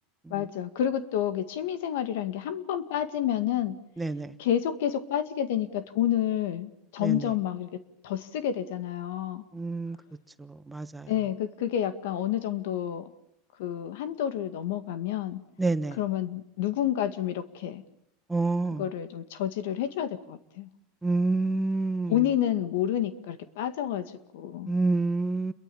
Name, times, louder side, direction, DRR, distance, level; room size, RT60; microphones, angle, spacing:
voice 1, 0.3-3.8 4.4-7.7 8.0-9.4 11.1-13.1 13.6-15.4 16.0-17.8 18.8-20.7 22.1-24.7, left 10 dB, 75° left, 10 dB, 2.0 m, -29 dB
voice 2, 4.0-4.3 7.0-7.3 9.5-10.0 10.4-11.1 15.6-16.0 18.3-18.9 21.0-22.3 24.7-25.5, right 3 dB, 5° right, 10 dB, 1.0 m, -28 dB
29.0 x 23.0 x 7.2 m, 0.79 s
supercardioid pair, 145°, 0 cm